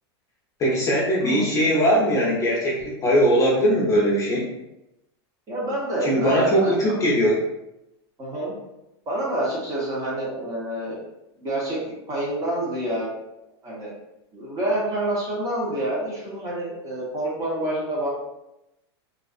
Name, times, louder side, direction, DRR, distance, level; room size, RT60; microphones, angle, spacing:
voice 1, 0.6-2.7 3.0-4.5 6.0-7.4, equal, 25° left, -5 dB, 0.6 m, -20 dB
voice 2, 1.2-1.6 5.5-6.8 8.2-8.5 9.1-11.0 11.4-11.8 12.1-13.1 13.6-13.9 14.3-18.1, right 1 dB, 25° right, -5 dB, 0.9 m, -27 dB
2.4 x 2.4 x 2.4 m, 0.90 s
supercardioid pair, 135°, 14 cm